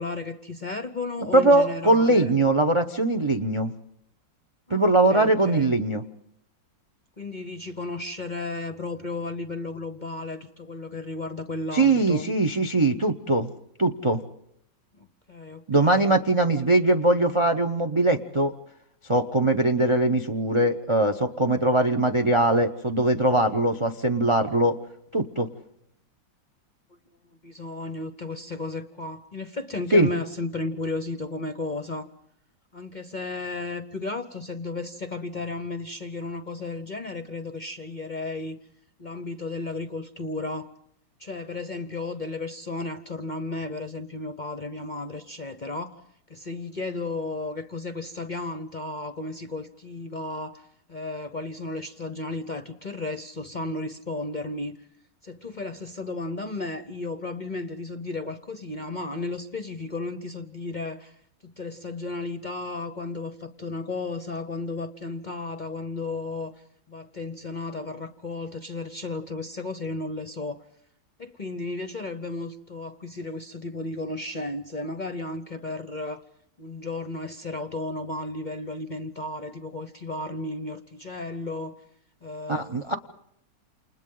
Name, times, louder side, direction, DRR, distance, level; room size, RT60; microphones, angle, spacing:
voice 1, 0.0-2.4 4.7-5.7 7.2-12.3 14.9-16.1 27.4-32.1 32.7-38.6 39.0-40.7 41.2-46.0 46.3-54.8 55.2-61.2 61.4-66.5 66.9-70.6 71.2-76.2 76.6-81.7 82.2-82.9, left 2 dB, 40° left, 9 dB, 0.6 m, -34 dB
voice 2, 1.3-3.7 4.7-6.0 11.7-13.5 13.8-14.2 15.7-18.5 19.1-24.8 25.1-25.5 29.9-30.1 82.5-82.9, right 2 dB, 45° right, 8 dB, 0.4 m, -21 dB
28.5 x 28.5 x 3.8 m, 0.75 s
omnidirectional pair, 2.0 m